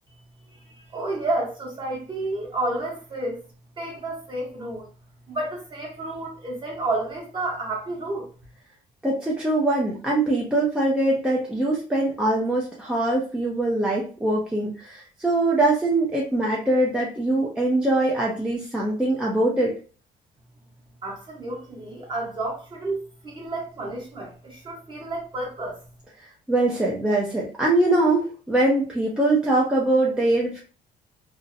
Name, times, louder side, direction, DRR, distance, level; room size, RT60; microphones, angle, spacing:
voice 1, 0.5-3.4 3.8-4.9 5.3-8.3 21.0-23.0 23.2-25.8, right 2 dB, 30° right, 1.1 m, -30 dB
voice 2, 9.0-19.7 26.5-30.6, right 2 dB, 5° right, 0.5 m, -22 dB
2.6 x 2.0 x 2.6 m
cardioid pair, 110°, 17 cm